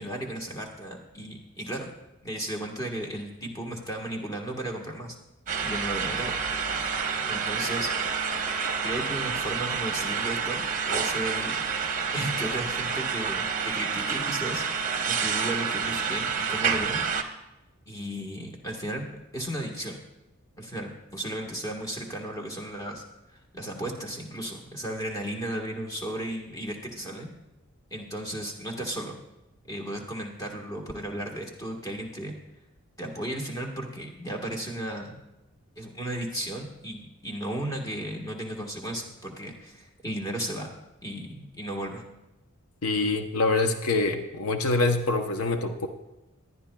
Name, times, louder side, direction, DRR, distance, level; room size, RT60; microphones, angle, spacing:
voice 1, 0.0-1.9 2.2-5.1 5.6-6.4 7.3-8.2 8.8-14.6 15.1-17.0 17.9-20.0 20.6-23.0 23.5-27.3 27.9-29.2 29.6-32.4 33.0-35.2 35.8-40.7 41.0-42.0, right 1 dB, 15° left, 1 dB, 1.4 m, -35 dB
sound 1, 5.5-17.2, right 6 dB, 35° right, 0.8 m, -29 dB
voice 2, 42.8-45.9, left 3 dB, 80° left, 6 dB, 0.8 m, -25 dB
18.5 x 11.0 x 2.3 m, 0.96 s
head